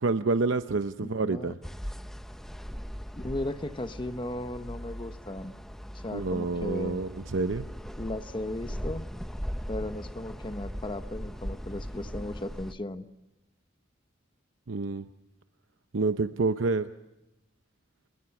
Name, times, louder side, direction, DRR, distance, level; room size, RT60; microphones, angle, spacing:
voice 1, 0.0-1.6 6.1-7.7 14.7-15.0 15.9-16.9, right 3 dB, 80° right, 10 dB, 0.7 m, -28 dB
voice 2, 1.0-1.5 3.1-5.5 5.9-7.0 8.0-9.0 9.7-13.1, left 1 dB, 25° left, 10 dB, 1.0 m, -36 dB
sound 1, 1.6-12.7, equal, ahead, 0.8 m, -39 dB
29.0 x 21.5 x 6.0 m, 0.96 s
head